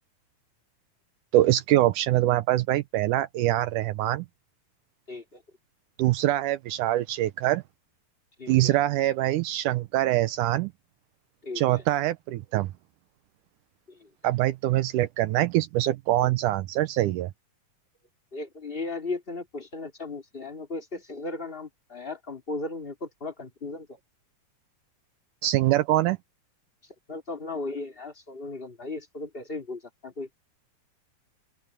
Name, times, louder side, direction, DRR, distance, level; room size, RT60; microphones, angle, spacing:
voice 1, 1.3-4.3 6.0-7.6 8.5-10.7 11.6-12.7 14.2-17.3 25.4-26.2, right 15 dB, 80° right, 2.0 m, -24 dB
voice 2, 5.1-5.4 8.4-8.8 11.4-11.8 13.9-14.1 18.3-24.0 27.1-30.3, left 3 dB, 15° left, 2.5 m, -36 dB
open air
omnidirectional pair, 4.0 m